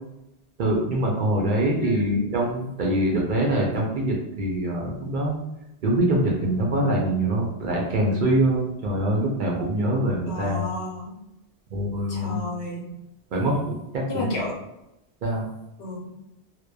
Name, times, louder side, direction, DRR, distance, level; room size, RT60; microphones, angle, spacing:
voice 1, 0.6-5.4 5.8-10.6 11.7-12.4 13.3-14.3 15.2-15.5, right 1 dB, 55° right, -2 dB, 0.6 m, -24 dB
voice 2, 1.8-2.2 10.3-11.1 12.1-12.9 14.1-14.5 15.8-16.1, left 2 dB, 90° left, -2 dB, 1.0 m, -31 dB
2.9 x 2.1 x 2.2 m, 0.87 s
omnidirectional pair, 1.1 m